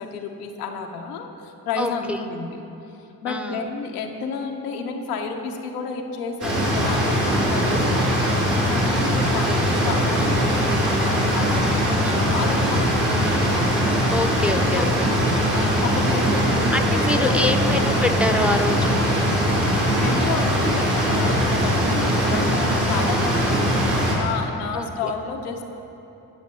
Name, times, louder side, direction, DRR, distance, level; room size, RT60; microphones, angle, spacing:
voice 1, 0.0-2.6 3.2-8.3 8.7-13.0 14.7-15.2 15.5-17.4 19.9-25.6, left 5 dB, 90° left, 3 dB, 0.6 m, -31 dB
voice 2, 1.8-2.2 3.3-3.6 9.5-9.6 12.0-12.4 13.1-13.5 14.1-15.1 16.1-16.4 16.7-19.0 24.7-25.1, left 1 dB, 5° right, 7 dB, 0.6 m, -26 dB
sound 1, 6.4-24.1, equal, 80° right, 2.2 m, -21 dB
14.5 x 6.5 x 3.1 m, 3.0 s
hypercardioid pair, 40°, 44 cm